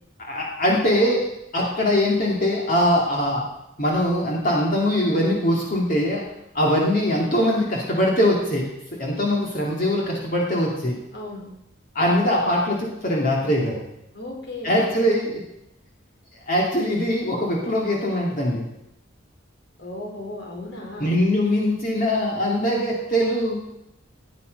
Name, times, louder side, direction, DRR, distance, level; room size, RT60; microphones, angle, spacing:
voice 1, 0.2-1.2 1.5-3.5 3.8-6.2 6.5-8.7 9.0-11.0 11.9-13.8 14.6-15.4 16.5-18.7 21.0-23.6, left 1 dB, 45° left, -2 dB, 2.5 m, -22 dB
voice 2, 11.1-11.5 14.1-15.0 19.8-21.1, left 2 dB, 60° left, 0 dB, 4.0 m, -35 dB
17.5 x 9.1 x 5.3 m, 0.85 s
head